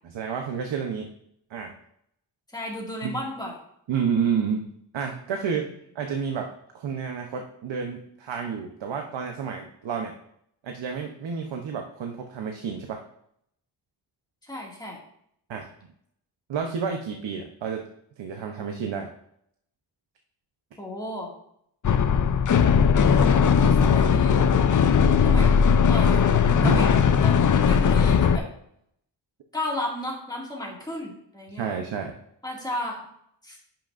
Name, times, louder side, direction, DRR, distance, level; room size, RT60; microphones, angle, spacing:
voice 1, 0.1-1.1 1.5-1.7 3.0-3.1 3.9-4.7 4.9-5.7 5.9-10.1 10.6-13.0 15.5-15.7 16.5-17.9 18.2-19.1 26.6-26.8 31.6-32.2, right 6 dB, 90° right, 3 dB, 0.8 m, -30 dB
voice 2, 2.5-3.6 14.4-15.0 20.8-21.3 23.0-24.4 25.2-26.2 26.6-27.4 27.6-28.5 29.5-31.7 32.4-33.1 33.4-33.6, left 1 dB, 10° left, -3 dB, 2.1 m, -34 dB
sound 1, 21.8-28.4, left 6 dB, 45° left, 0.5 m, -19 dB
10.5 x 5.9 x 2.5 m, 0.71 s
wide cardioid pair, 105°, 43 cm